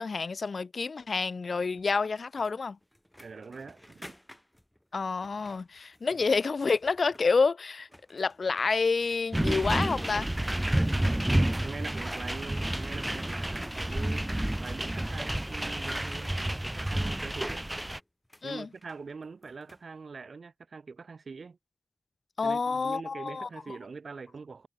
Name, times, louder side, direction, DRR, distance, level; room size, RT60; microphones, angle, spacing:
voice 1, 0.0-2.8 4.9-10.3 18.4-18.7 22.4-23.5, left 4 dB, 75° left, 0.3 m, -28 dB
sound 1, 1.7-7.5 7.8-19.9, left 1 dB, 10° left, 1.5 m, -56 dB
voice 2, 3.2-4.1 6.1-6.2 10.9-14.3 14.6-17.6 18.4-21.6 22.4-24.7, right 4 dB, 80° right, 1.6 m, -43 dB
sound 2, 9.3-18.0, right 1 dB, 15° right, 0.5 m, -30 dB
wide cardioid pair, 60°, 0 cm